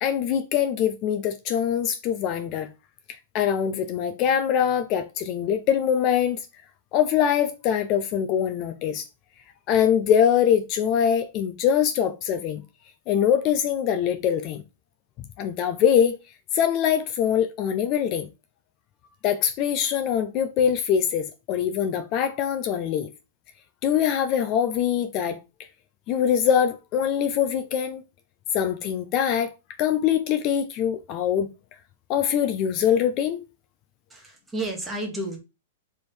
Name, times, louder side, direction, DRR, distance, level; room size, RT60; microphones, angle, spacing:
voice 1, 0.0-2.7 3.3-6.4 6.9-9.1 9.7-12.6 13.1-14.6 15.4-16.2 16.5-18.3 19.2-23.1 23.8-25.4 26.1-28.0 28.5-29.5 29.8-31.5 32.1-33.4, left 9 dB, 35° left, 0.4 m, -23 dB
voice 2, 34.1-35.4, right 1 dB, 10° right, 1.1 m, -31 dB
3.4 x 2.6 x 4.4 m
hypercardioid pair, 140°, 0 cm